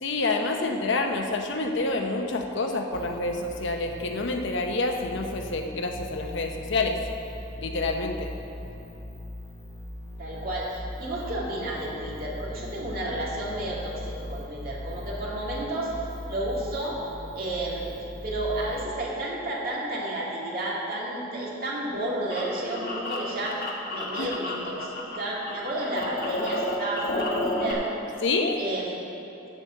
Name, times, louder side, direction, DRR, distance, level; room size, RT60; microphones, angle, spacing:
voice 1, 0.0-7.0 7.6-8.3 24.2-24.3 28.2-28.6, left 3 dB, 65° left, 4 dB, 0.8 m, -28 dB
sound 1, 2.9-18.8, left 1 dB, 15° left, 1.2 m, -39 dB
voice 2, 10.2-15.9 16.3-17.0 17.3-17.9 18.2-23.5 23.9-27.9 28.6-29.0, right 1 dB, 50° right, -5 dB, 2.3 m, -31 dB
sound 2, 21.8-25.2 25.4-27.7, left 1 dB, 50° left, 1.3 m, -31 dB
8.1 x 7.5 x 7.5 m, 2.9 s
head